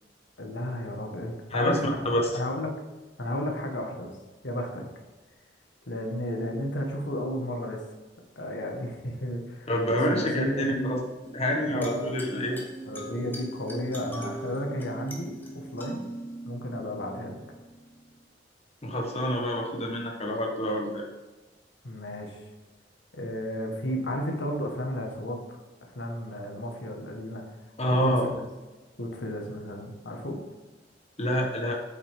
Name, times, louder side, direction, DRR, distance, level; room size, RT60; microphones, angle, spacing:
voice 1, 0.4-2.8 3.2-4.2 4.4-4.8 5.9-7.8 8.4-10.9 11.5-12.5 12.9-16.0 16.5-17.4 21.8-22.4 23.1-27.4 27.9-28.4 29.0-30.4, equal, 85° left, 2 dB, 1.7 m, -33 dB
voice 2, 1.5-2.4 9.7-11.0 11.3-12.6 18.8-21.1 27.8-28.3 31.2-31.7, equal, 35° left, 0 dB, 1.4 m, -27 dB
sound 1, 11.2-18.2, right 1 dB, 10° left, 1.5 m, -40 dB
8.8 x 8.0 x 3.8 m, 1.2 s
head